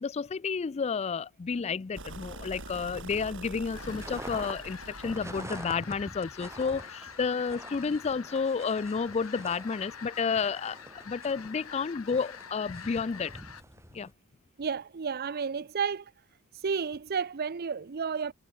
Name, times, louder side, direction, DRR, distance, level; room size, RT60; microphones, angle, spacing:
voice 1, 0.0-10.8 11.1-13.3 13.9-14.1, left 5 dB, 30° left, 0.3 m, -31 dB
sound 1, 1.9-5.9, right 2 dB, 60° right, 6.8 m, -44 dB
sound 2, 3.7-13.6, left 7 dB, 85° left, 1.9 m, -46 dB
sound 3, 3.8-14.1, right 1 dB, 15° right, 2.8 m, -46 dB
voice 2, 14.6-16.1 16.6-18.3, right 6 dB, 45° right, 0.5 m, -31 dB
head